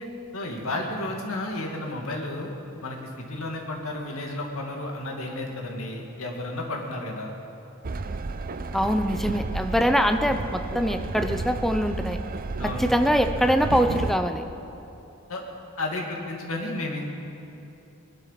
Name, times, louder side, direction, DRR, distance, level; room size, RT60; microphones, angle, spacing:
voice 1, 0.3-2.5 2.8-7.3 9.7-10.0 12.6-12.9 15.3-15.4 15.8-17.1, left 2 dB, 75° left, 0 dB, 2.3 m, -32 dB
Train, 7.8-14.2, right 3 dB, 45° right, 0.6 m, -32 dB
voice 2, 8.7-12.2 12.6-14.4, equal, ahead, 7 dB, 0.6 m, -23 dB
20.5 x 11.5 x 5.8 m, 2.9 s
head